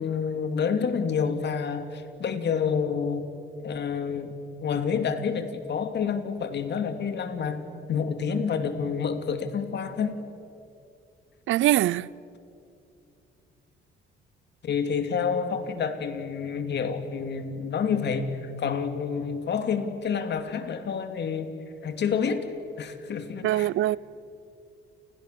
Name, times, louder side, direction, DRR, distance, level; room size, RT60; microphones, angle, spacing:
voice 1, 0.0-3.3 3.6-4.4 4.6-7.6 7.9-10.1 14.6-21.5 21.8-22.5 22.8-23.7, left 6 dB, 60° left, 2.7 m, -28 dB
voice 2, 11.5-12.1 23.4-24.0, right 14 dB, 75° right, 0.6 m, -22 dB
29.5 x 29.5 x 6.8 m
cardioid pair, 90°, 20 cm